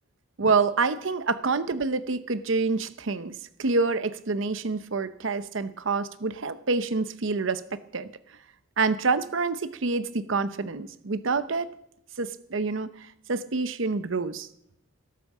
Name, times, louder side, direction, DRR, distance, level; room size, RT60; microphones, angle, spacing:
voice 1, 0.4-8.1 8.8-11.7 12.2-14.5, right 4 dB, 65° right, 13 dB, 0.7 m, -27 dB
18.0 x 8.4 x 7.3 m, 0.74 s
head